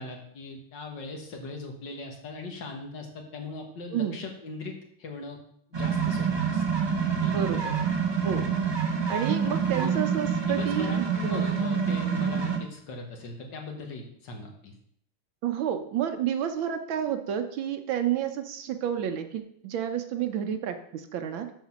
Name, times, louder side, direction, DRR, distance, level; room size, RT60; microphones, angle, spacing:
voice 1, 0.0-5.4 5.7-6.6 7.2-7.5 9.7-9.9 10.4-14.7, left 4 dB, 60° left, 2 dB, 2.0 m, -39 dB
sound 1, 5.7-12.6, right 6 dB, 30° right, 0.5 m, -27 dB
voice 2, 7.3-7.7 8.2-8.4 9.1-11.4 15.4-21.5, right 9 dB, 75° right, 7 dB, 1.5 m, -30 dB
7.2 x 6.0 x 5.9 m, 0.69 s
omnidirectional pair, 2.3 m